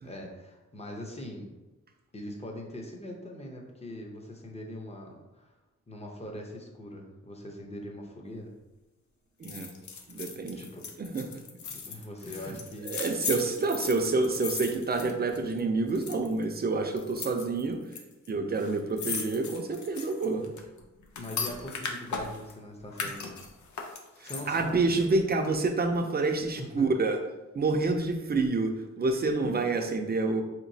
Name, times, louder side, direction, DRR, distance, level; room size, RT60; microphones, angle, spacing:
voice 1, 0.0-1.5 2.1-5.5 5.9-8.5 10.6-10.9 11.9-12.9 21.2-23.4 24.2-24.8 26.6-26.9 29.4-29.6, left 1 dB, 20° left, 1 dB, 0.6 m, -41 dB
sound 1, 9.4-15.6 15.9-16.4 17.0-18.0 18.3-18.4 18.6-22.5 22.9-24.7 25.1-25.2, left 5 dB, 70° left, 0.6 m, -37 dB
voice 2, 9.4-9.7 10.1-10.6 11.0-11.2 12.2-12.6 12.8-17.8 18.3-20.4 24.2-27.2 27.5-28.7 29.0-30.4, right 3 dB, 30° right, 4 dB, 0.4 m, -28 dB
4.2 x 3.0 x 2.7 m, 1.1 s
wide cardioid pair, 125°, 30 cm